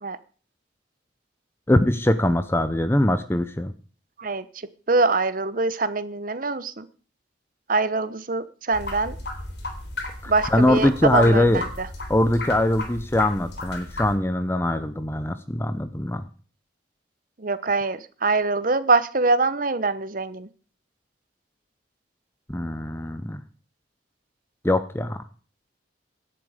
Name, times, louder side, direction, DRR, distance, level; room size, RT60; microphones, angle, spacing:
voice 1, 1.7-3.7 10.2-11.6 12.1-16.2 22.5-23.4 24.6-25.2, left 1 dB, 15° left, 11 dB, 0.7 m, -22 dB
voice 2, 4.9-6.9 7.7-9.2 10.3-11.9 17.4-20.5, right 3 dB, 45° right, 14 dB, 1.0 m, -24 dB
sound 1, 8.7-14.1, left 2 dB, 65° left, 3.5 m, -34 dB
17.0 x 11.0 x 5.0 m, 0.40 s
head